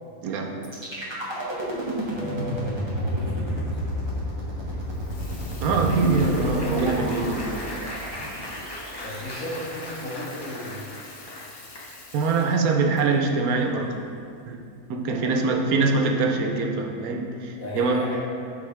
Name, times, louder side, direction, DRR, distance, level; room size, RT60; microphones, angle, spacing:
voice 1, 0.2-0.6 5.6-7.5 12.1-14.0 14.5-14.6 14.9-18.0, right 3 dB, 85° right, 3 dB, 1.2 m, -23 dB
sound 1, 0.6-10.6, equal, 20° right, 1.1 m, -30 dB
voice 2, 2.1-3.8 9.0-10.8 15.1-15.3 15.7-15.8 17.6-18.2, equal, 70° left, -7 dB, 2.2 m, -35 dB
Applause, 3.9-12.3 12.9-13.1 13.4-13.6, left 1 dB, 30° left, 0.4 m, -40 dB
Water tap faucet / Sink (filling or washing), 4.8-14.4, left 3 dB, 50° left, 0.9 m, -47 dB
11.5 x 4.3 x 3.3 m, 2.5 s
omnidirectional pair, 1.5 m